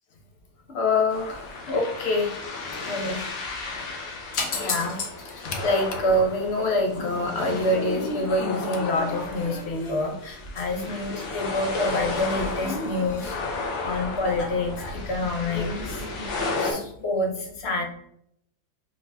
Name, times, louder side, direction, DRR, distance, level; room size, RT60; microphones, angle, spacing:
voice 1, 0.7-2.3 2.7-3.3 4.3-13.4 13.7-16.3 16.6-17.8, left 2 dB, 50° left, 1 dB, 0.8 m, -26 dB
sound 1, 1.1-16.7, left 3 dB, 75° left, 1.7 m, -34 dB
4.6 x 4.2 x 2.7 m, 0.73 s
omnidirectional pair, 2.1 m